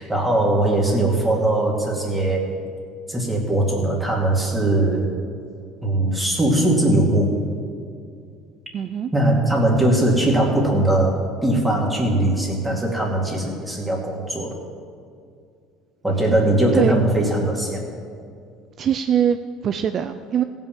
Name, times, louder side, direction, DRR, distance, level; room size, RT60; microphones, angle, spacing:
voice 1, 0.0-2.4 3.1-5.1 5.8-7.3 9.1-11.1 11.4-14.6 16.0-17.8, right 1 dB, 10° right, -2 dB, 2.4 m, -20 dB
voice 2, 8.7-9.1 16.7-17.1 18.8-20.4, right 8 dB, 45° right, 8 dB, 0.5 m, -22 dB
15.5 x 5.6 x 7.5 m, 2.3 s
supercardioid pair, 90°, 0 cm